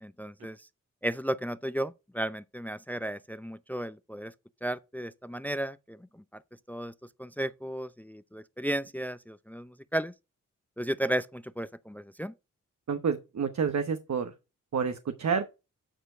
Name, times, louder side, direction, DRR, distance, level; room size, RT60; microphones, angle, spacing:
voice 1, 0.0-0.6 1.0-4.3 4.6-6.0 6.7-6.9 7.2-10.1 10.8-12.3, right 1 dB, 5° left, 0.5 m, -34 dB
voice 2, 12.9-14.3 14.7-15.5, right 6 dB, 60° right, 1.0 m, -29 dB
9.1 x 4.5 x 5.0 m
cardioid pair, 50°, 32 cm